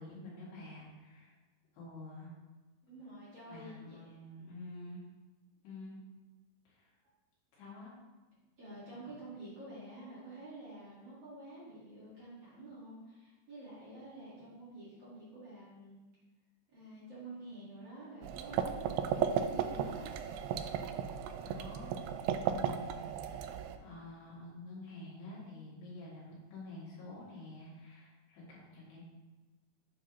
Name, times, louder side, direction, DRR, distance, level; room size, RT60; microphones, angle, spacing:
voice 1, 0.0-1.3 1.7-2.3 3.5-5.1 5.6-6.0 6.7-6.9 7.5-7.9 21.4-29.0, left 2 dB, 75° left, -6 dB, 4.2 m, -49 dB
voice 2, 2.8-4.2 8.6-16.0 16.7-20.2, right 1 dB, 45° right, -10 dB, 2.4 m, -49 dB
sound 1, 18.2-23.8, right 8 dB, 85° right, 2.4 m, -35 dB
9.3 x 5.7 x 3.0 m, 1.2 s
omnidirectional pair, 5.0 m